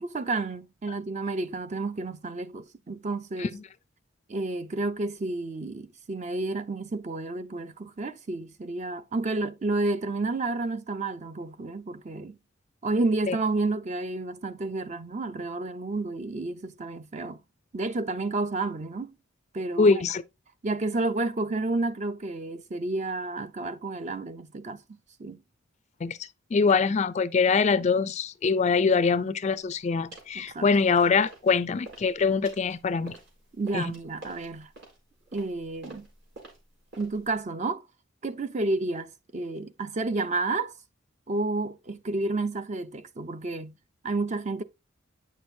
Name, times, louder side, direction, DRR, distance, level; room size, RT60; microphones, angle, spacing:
voice 1, 0.0-3.6 4.3-12.4 12.8-17.4 17.7-19.1 19.5-20.0 20.6-24.8 25.2-25.4 30.3-30.7 33.6-34.7 35.3-36.1 37.0-37.8 38.2-40.7 41.3-43.8 44.0-44.6, right 3 dB, 35° right, 0.5 m, -30 dB
voice 2, 19.8-20.2 26.0-26.2 26.5-33.1 33.7-33.8, left 5 dB, 35° left, 0.4 m, -23 dB
sound 1, 29.4-29.7 30.1-30.4 30.7-31.5 31.8-37.3, right 2 dB, 60° right, 4.1 m, -48 dB
9.0 x 6.2 x 2.7 m
head